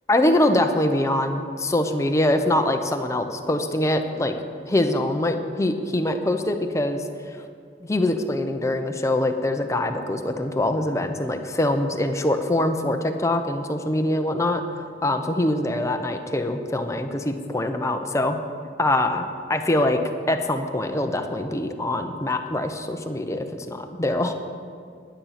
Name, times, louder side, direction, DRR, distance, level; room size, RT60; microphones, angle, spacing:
voice 1, 0.1-4.3 4.7-7.5 7.8-14.6 15.0-18.4 18.8-20.0 20.3-24.3, left 1 dB, 15° left, 6 dB, 0.7 m, -24 dB
10.0 x 9.6 x 5.8 m, 2.3 s
head